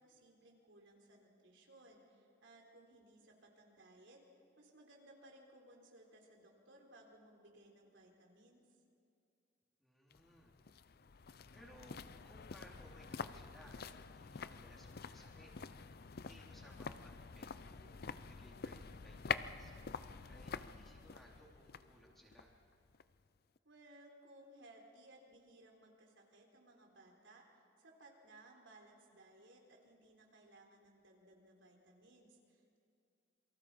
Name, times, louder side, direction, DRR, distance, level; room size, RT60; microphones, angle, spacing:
voice 1, 0.0-4.2 4.6-8.6 23.6-32.8, right 1 dB, 90° right, 0 dB, 3.8 m, -62 dB
voice 2, 9.8-10.5 11.5-15.5 16.2-22.5, equal, ahead, -3 dB, 3.5 m, -62 dB
sound 1, 10.1-23.3 23.6-23.7, left 6 dB, 55° left, 0.6 m, -47 dB
28.0 x 23.5 x 5.0 m, 2.6 s
head